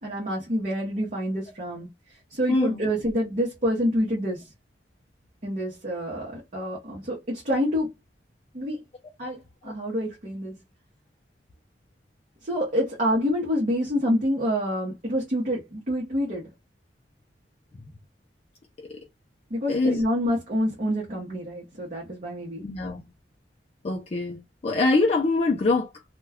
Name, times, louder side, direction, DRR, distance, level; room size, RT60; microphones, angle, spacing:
voice 1, 0.0-1.9 2.3-4.5 5.4-7.9 8.5-8.8 9.2-10.6 12.4-16.5 19.5-22.6, equal, 45° right, 0.8 m, -27 dB
voice 2, 22.6-23.0 23.8-24.4 24.6-25.9, left 3 dB, 35° left, 0.4 m, -23 dB
2.2 x 2.2 x 3.4 m
head